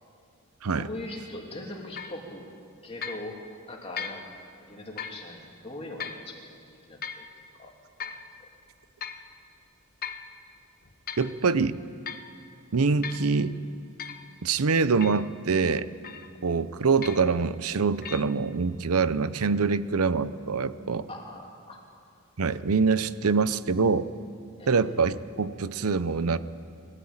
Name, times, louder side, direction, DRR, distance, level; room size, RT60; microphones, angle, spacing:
voice 1, 0.7-2.4 2.8-3.3 3.7-4.3 4.6-6.5 6.9-7.2 7.6-7.7 8.0-8.1 21.1-21.8 24.6-24.8, left 1 dB, 25° left, -1 dB, 2.9 m, -40 dB
sound 1, 2.0-2.2 3.0-3.3 4.0-4.3 5.0-5.2 6.0-6.2 7.0-7.3 8.0-8.3 9.0-9.3 10.0-10.3 10.8-11.3 12.1-12.3 13.0-13.3 14.0-14.2 15.0-15.3 16.0-16.4 17.0-17.4 18.0-18.2, left 7 dB, 45° left, 0.9 m, -37 dB
voice 2, 11.2-11.8 12.7-13.6 14.4-15.9 16.4-21.1 22.4-24.1 24.7-26.4, right 4 dB, 80° right, 15 dB, 0.7 m, -25 dB
22.5 x 13.5 x 9.0 m, 2.4 s
head